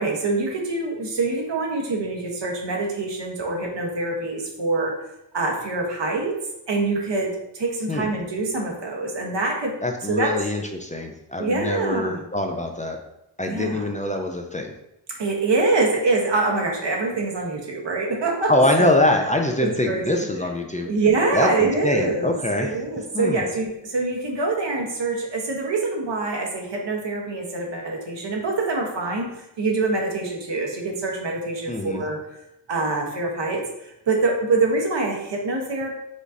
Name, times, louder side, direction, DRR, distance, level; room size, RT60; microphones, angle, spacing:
voice 1, 0.0-4.9 5.3-6.3 6.7-9.7 10.1-10.4 11.4-12.2 13.4-13.9 15.1-18.5 18.8-19.0 19.6-20.3 20.8-29.3 29.6-32.2 32.7-33.6 34.1-35.9, right 3 dB, 75° right, 0 dB, 1.2 m, -25 dB
voice 2, 9.8-13.0 13.4-14.7 18.5-20.9 21.3-22.7 23.1-23.5 31.7-32.0, left 1 dB, 20° left, 3 dB, 0.5 m, -24 dB
5.0 x 3.9 x 2.7 m, 0.85 s
cardioid pair, 60°, 43 cm